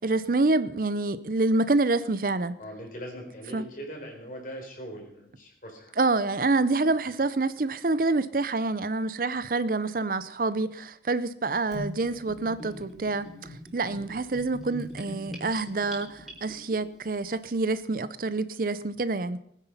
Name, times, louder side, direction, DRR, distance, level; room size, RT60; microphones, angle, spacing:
voice 1, 0.0-2.6 3.5-3.6 6.0-13.3 13.7-19.4, right 3 dB, 50° right, 0.6 m, -27 dB
voice 2, 2.6-5.9, equal, 45° left, 4.3 m, -41 dB
Gurgling / Bathtub (filling or washing), 11.7-16.8, left 1 dB, ahead, 3.6 m, -41 dB
20.0 x 9.9 x 5.6 m
head